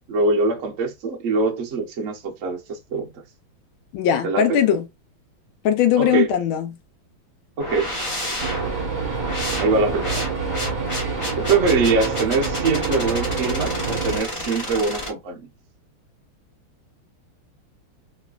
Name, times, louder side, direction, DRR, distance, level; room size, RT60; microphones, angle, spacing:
voice 1, 0.1-3.1 4.2-4.6 6.0-6.3 7.6-8.0 9.6-10.3 11.3-15.5, right 3 dB, 80° right, 0.7 m, -23 dB
voice 2, 3.9-4.8 5.6-6.7, left 9 dB, 75° left, 1.4 m, -19 dB
sound 1, 7.6-15.1, left 1 dB, 50° left, 0.3 m, -31 dB
sound 2, 8.4-14.2, right 4 dB, 25° right, 1.1 m, -27 dB
3.1 x 3.1 x 2.3 m
omnidirectional pair, 2.4 m